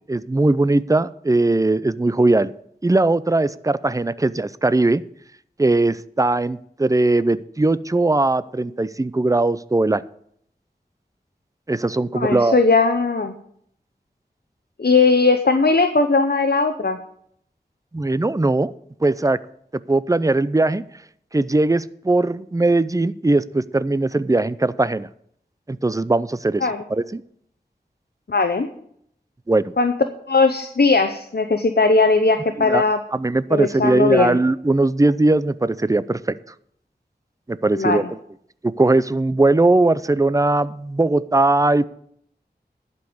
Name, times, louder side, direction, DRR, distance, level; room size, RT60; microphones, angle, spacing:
voice 1, 0.1-2.5 2.8-5.0 5.6-10.0 11.7-12.6 17.9-18.7 19.0-19.4 19.9-20.8 21.3-25.1 25.7-27.2 29.5-29.7 32.6-32.8 33.1-36.4 37.5-38.0 38.6-41.8, right 2 dB, 20° right, 17 dB, 0.5 m, -19 dB
voice 2, 12.1-13.3 14.8-17.0 26.6-26.8 28.3-28.7 29.8-29.9 30.3-33.0 33.5-34.4 37.7-38.1, left 3 dB, 70° left, 7 dB, 0.8 m, -18 dB
11.5 x 5.4 x 8.5 m, 0.68 s
wide cardioid pair, 45°, 17 cm